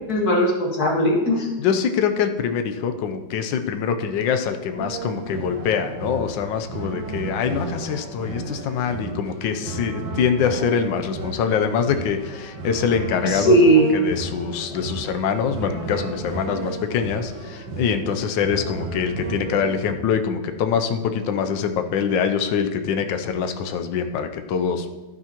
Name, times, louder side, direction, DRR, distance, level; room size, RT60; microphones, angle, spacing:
voice 1, 0.1-1.5 13.2-13.9, right 1 dB, 50° left, -1 dB, 2.2 m, -18 dB
voice 2, 1.6-13.6 13.9-24.9, left 7 dB, 75° left, 7 dB, 1.4 m, -24 dB
sound 1, 4.8-19.9, right 3 dB, 80° right, 2.4 m, -33 dB
12.5 x 9.6 x 3.0 m, 1.2 s
omnidirectional pair, 2.1 m